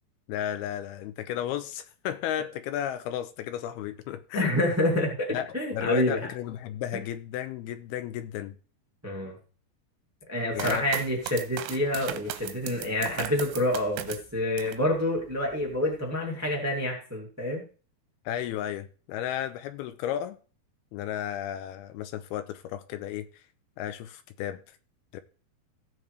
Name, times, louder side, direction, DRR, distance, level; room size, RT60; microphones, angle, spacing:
voice 1, 0.3-4.6 5.3-8.6 10.5-10.9 18.3-20.4 20.9-23.4 23.8-24.6 25.1-25.2, left 11 dB, 85° left, 2.3 m, -33 dB
voice 2, 4.3-6.3 9.0-9.3 10.3-17.6, left 1 dB, 10° right, 0.7 m, -28 dB
sound 1, 10.6-14.9 15.3-15.9, right 12 dB, 80° right, 3.0 m, -37 dB
16.0 x 7.5 x 3.3 m
omnidirectional pair, 5.1 m